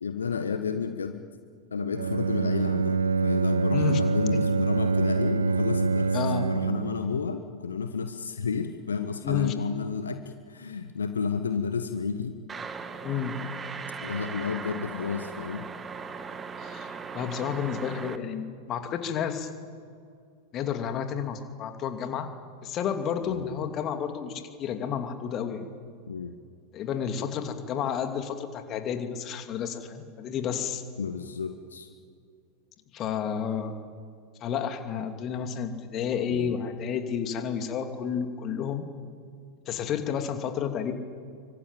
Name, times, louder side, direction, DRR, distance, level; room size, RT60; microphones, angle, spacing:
voice 1, 0.0-1.2 1.7-6.2 6.4-12.4 14.0-15.7 23.2-23.4 26.1-26.3 31.0-31.9 36.3-36.5, left 5 dB, 70° left, 8 dB, 1.3 m, -31 dB
Bowed string instrument, 1.9-7.0, right 4 dB, 70° right, 0.8 m, -25 dB
voice 2, 6.1-6.5 9.2-9.5 13.0-13.4 16.6-19.5 20.5-22.3 22.6-25.7 26.7-30.8 32.9-33.7 34.4-38.9 39.7-40.9, left 8 dB, 30° left, 7 dB, 2.7 m, -31 dB
sound 1, 12.5-18.2, right 5 dB, 20° right, 1.7 m, -38 dB
25.5 x 24.5 x 9.0 m, 2.3 s
figure-of-eight pair, 90°, 0 cm